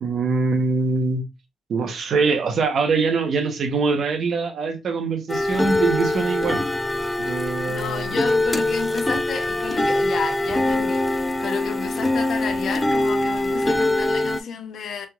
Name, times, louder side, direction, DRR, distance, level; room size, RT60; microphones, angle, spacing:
voice 1, 0.0-1.2 1.7-6.6 7.2-8.2, right 4 dB, 60° right, 0.8 m, -23 dB
sound 1, 5.3-14.4, left 2 dB, 10° left, 0.3 m, -23 dB
voice 2, 7.6-15.1, left 6 dB, 60° left, 0.8 m, -31 dB
3.4 x 2.8 x 2.3 m
cardioid pair, 90°, 0 cm